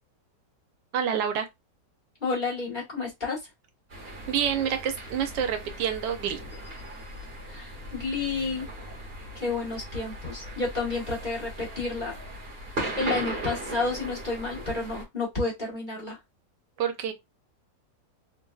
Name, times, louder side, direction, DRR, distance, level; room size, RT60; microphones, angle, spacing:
voice 1, 0.9-1.5 4.3-6.4 16.8-17.1, right 8 dB, 80° right, 1.2 m, -27 dB
voice 2, 2.2-3.4 7.5-8.7 9.3-12.1 13.0-16.2, left 3 dB, 30° left, 1.3 m, -30 dB
sound 1, 3.9-15.0, right 1 dB, 40° right, 1.2 m, -38 dB
3.2 x 2.6 x 2.3 m
omnidirectional pair, 1.9 m